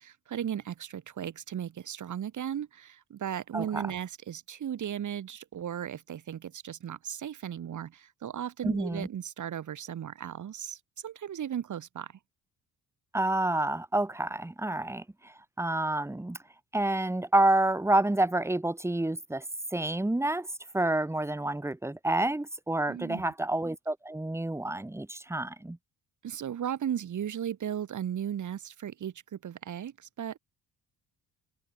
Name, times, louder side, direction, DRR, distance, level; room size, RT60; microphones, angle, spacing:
voice 1, 0.0-12.1 22.9-23.3 26.2-30.4, right 9 dB, 50° right, 2.2 m, -36 dB
voice 2, 8.6-9.1 13.1-16.4 16.7-19.4 19.7-20.5 20.7-25.8, right 1 dB, 5° right, 1.7 m, -28 dB
cardioid pair, 100°, 38 cm